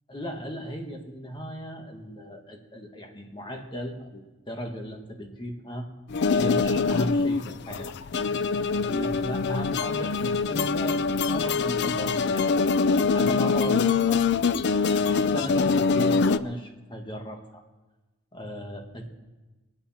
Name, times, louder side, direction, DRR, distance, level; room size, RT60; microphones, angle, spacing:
voice 1, 0.1-5.9 6.3-8.0 8.8-12.7 13.1-14.3 14.7-17.6 18.3-19.1, equal, 20° left, 3 dB, 1.8 m, -36 dB
sound 1, 6.1-16.4, left 4 dB, 50° left, 0.4 m, -24 dB
23.5 x 9.6 x 4.4 m, 1.2 s
head